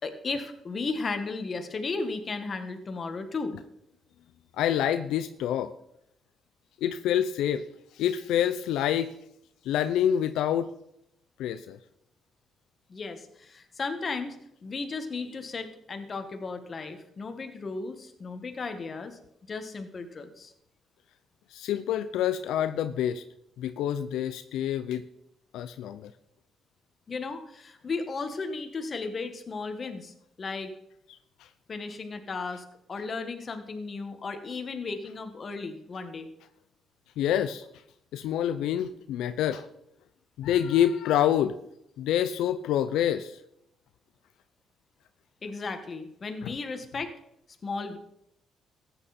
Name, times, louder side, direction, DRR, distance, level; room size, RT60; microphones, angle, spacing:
voice 1, 0.0-3.5 12.9-19.2 19.5-20.5 27.1-30.7 31.7-36.3 45.4-47.1 47.6-48.0, left 4 dB, 40° left, 7 dB, 1.7 m, -35 dB
voice 2, 4.6-5.7 6.8-7.6 8.0-9.1 9.7-10.7 11.4-11.8 21.5-23.2 23.6-25.0 25.5-26.1 37.2-37.7 38.1-39.7 40.4-41.6 42.0-43.3 46.4-46.5, left 10 dB, 90° left, 11 dB, 0.5 m, -27 dB
14.5 x 9.2 x 4.3 m, 0.78 s
cardioid pair, 90°, 0 cm